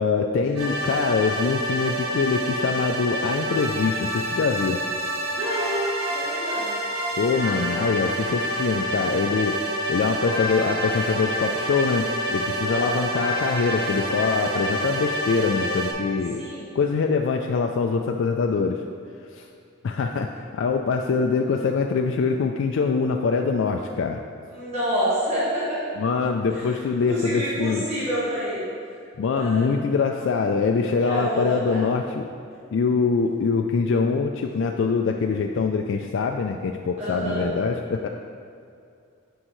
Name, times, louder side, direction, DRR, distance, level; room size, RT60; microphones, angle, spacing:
voice 1, 0.0-4.8 7.2-9.5 9.9-12.0 12.3-16.4 16.7-18.8 19.3-19.5 19.8-24.2 26.0-27.8 29.2-32.3 32.7-38.1, left 5 dB, 60° left, 3 dB, 0.3 m, -24 dB
sound 1, 0.6-15.9, equal, 90° right, 1.7 m, -27 dB
voice 2, 5.3-6.7 12.7-13.0 16.4-16.7 21.1-21.2 24.5-25.8 26.5-26.7 27.1-28.7 29.4-29.7 31.0-31.8 37.0-37.5, equal, 30° right, -9 dB, 1.5 m, -28 dB
9.9 x 5.4 x 3.1 m, 2.4 s
head